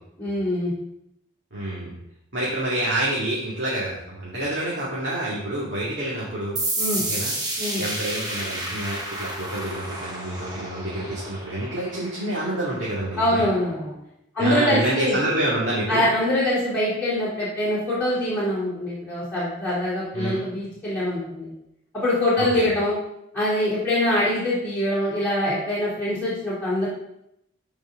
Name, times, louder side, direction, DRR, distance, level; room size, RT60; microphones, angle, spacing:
voice 1, 0.2-0.7 6.8-7.0 7.6-7.8 13.2-13.9 14.3-15.2 15.9-21.5 21.9-22.9 23.3-26.9, left 1 dB, 10° left, -11 dB, 3.3 m, -24 dB
voice 2, 1.5-1.9 2.3-6.6 7.1-7.3 7.8-13.4 14.4-16.1 20.1-20.5 22.4-22.6, right 1 dB, 60° right, -7 dB, 2.5 m, -27 dB
sound 1, 6.6-13.9, right 1 dB, 20° right, 1.4 m, -31 dB
13.0 x 5.3 x 3.8 m, 0.80 s
head